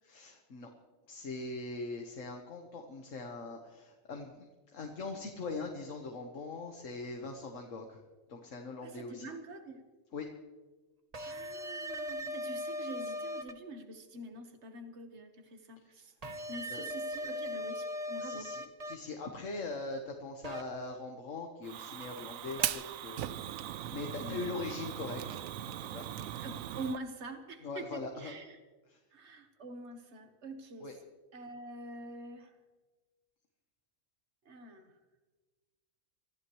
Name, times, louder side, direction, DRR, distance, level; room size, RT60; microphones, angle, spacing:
voice 1, 0.0-0.7 1.1-8.0 8.3-9.3 10.1-10.3 16.7-16.9 18.2-23.4 23.7-25.2 25.6-26.1 27.6-28.4 28.9-29.0 30.8-30.9, left 3 dB, 65° left, 2 dB, 1.7 m, -41 dB
voice 2, 8.8-9.8 11.2-16.1 16.5-18.5 24.2-24.6 26.4-28.6 29.1-30.9 31.3-32.5 34.4-34.9, right 2 dB, 55° right, 6 dB, 1.7 m, -45 dB
sound 1, 11.1-13.5 16.2-18.9 20.4-20.6 22.6-22.7, equal, 30° right, 1.1 m, -39 dB
Fire, 21.6-27.0, right 11 dB, 80° right, 1.0 m, -39 dB
25.5 x 14.5 x 3.2 m, 1.2 s
omnidirectional pair, 1.4 m